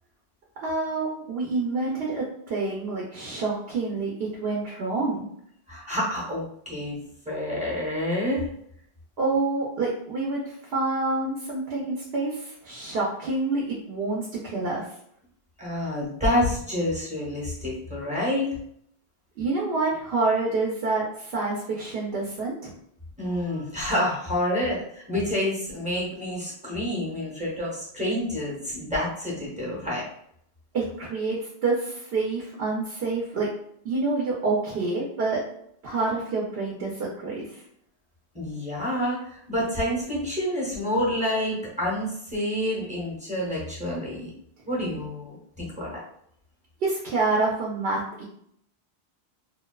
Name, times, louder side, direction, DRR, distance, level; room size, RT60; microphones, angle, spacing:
voice 1, 0.6-5.3 9.2-14.8 19.4-22.7 30.7-33.5 33.8-35.4 35.8-37.6 46.8-48.2, right 3 dB, 75° right, -3 dB, 0.8 m, -27 dB
voice 2, 5.7-7.0 7.3-8.5 15.6-18.5 23.2-30.0 38.3-44.3 44.6-45.9, left 1 dB, 10° right, -5 dB, 0.7 m, -28 dB
2.7 x 2.1 x 2.2 m, 0.70 s
omnidirectional pair, 1.1 m